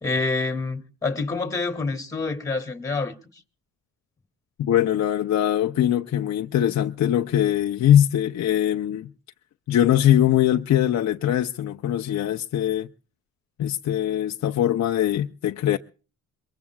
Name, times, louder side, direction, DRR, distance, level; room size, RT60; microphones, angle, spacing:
voice 1, 0.0-3.4, left 3 dB, 10° left, 2.3 m, -27 dB
voice 2, 4.6-9.1 9.7-12.9 13.6-15.8, left 11 dB, 50° left, 0.7 m, -22 dB
23.0 x 22.0 x 2.3 m
cardioid pair, 85°, 35 cm